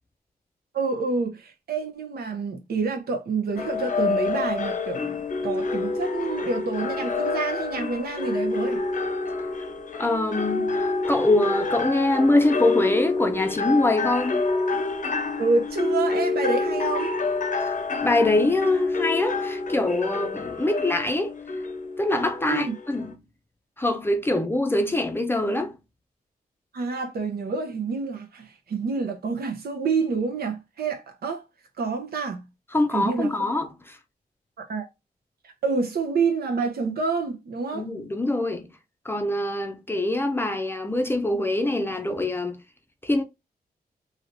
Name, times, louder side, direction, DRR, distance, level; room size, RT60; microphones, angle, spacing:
voice 1, 0.7-8.8 15.4-17.1 22.5-22.7 26.7-31.4 31.8-32.5 32.9-33.3 34.6-34.9 35.4-37.9, right 4 dB, 80° right, 0.7 m, -28 dB
sound 1, 3.6-23.1, left 3 dB, 55° left, 0.6 m, -28 dB
voice 2, 10.0-14.4 17.6-17.7 18.0-21.4 22.0-23.1 23.8-25.7 32.7-34.0 37.7-38.7 39.1-42.6 43.0-43.2, left 2 dB, 15° left, 0.5 m, -24 dB
3.2 x 2.8 x 2.6 m
wide cardioid pair, 105°, 16 cm